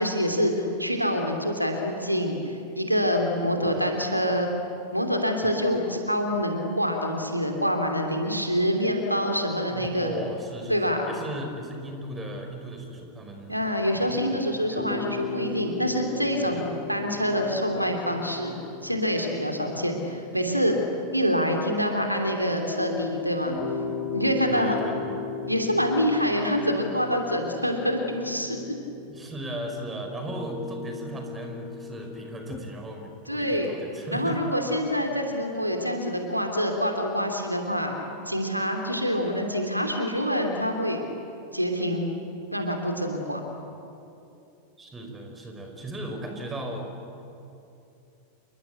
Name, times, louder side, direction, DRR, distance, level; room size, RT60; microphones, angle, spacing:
voice 1, 0.0-4.5 4.9-10.2 10.7-11.1 13.5-20.8 21.1-23.6 24.1-24.8 25.5-28.6 33.3-33.7 34.1-37.9 38.3-41.0 41.5-42.1 42.5-43.4, equal, 90° right, 4 dB, 2.8 m, -26 dB
voice 2, 9.7-13.5 14.7-14.9 16.4-16.7 24.5-25.2 29.1-34.4 44.8-46.9, right 1 dB, 15° right, 4 dB, 5.2 m, -37 dB
sound 1, 14.8-32.6, left 5 dB, 20° left, 3.6 m, -37 dB
28.5 x 23.5 x 8.4 m, 2.8 s
figure-of-eight pair, 90°, 0 cm